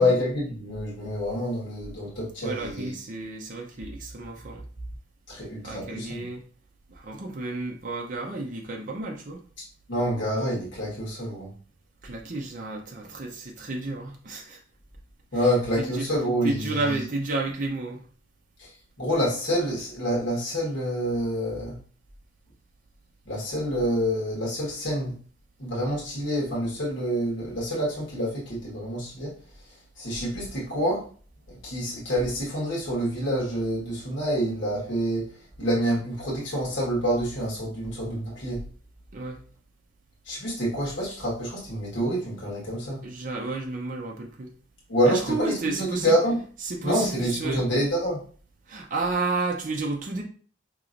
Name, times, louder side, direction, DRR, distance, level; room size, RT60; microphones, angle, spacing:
voice 1, 0.0-2.9 5.3-6.2 9.6-11.5 15.3-17.0 18.6-21.8 23.2-25.2 25.6-31.1 31.5-38.6 40.2-43.0 44.9-46.4 46.8-48.2, equal, 85° left, 1.4 m, -27 dB
voice 2, 2.4-4.7 5.6-6.4 6.9-9.4 12.0-14.6 15.8-16.1 16.4-18.1 39.1-39.4 43.0-44.5 45.1-46.1 46.6-47.6 48.7-50.2, right 3 dB, 45° right, 0.6 m, -31 dB
4.8 x 2.9 x 2.5 m
head